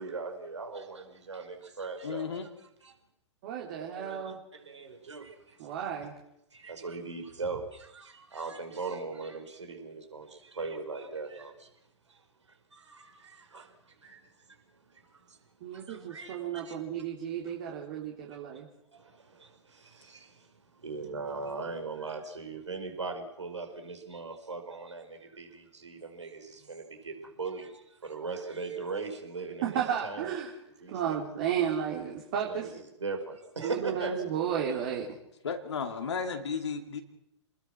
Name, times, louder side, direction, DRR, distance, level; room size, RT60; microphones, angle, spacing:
voice 1, 0.0-2.4 2.8-2.9 4.0-5.7 6.5-11.7 12.1-12.2 12.5-14.6 14.9-15.4 15.7-16.8 17.5-17.6 18.9-30.3 30.8-31.2 32.5-32.7 33.0-34.1, right 4 dB, 75° right, 4 dB, 5.2 m, -40 dB
voice 2, 2.0-2.5 35.4-37.0, left 5 dB, 65° left, 4 dB, 2.5 m, -34 dB
voice 3, 3.4-4.4 5.6-6.1 15.6-18.7 29.6-30.5 30.9-32.7 33.6-35.1, right 8 dB, 45° right, -1 dB, 3.6 m, -33 dB
29.0 x 20.0 x 6.3 m, 0.83 s
figure-of-eight pair, 110°, 15 cm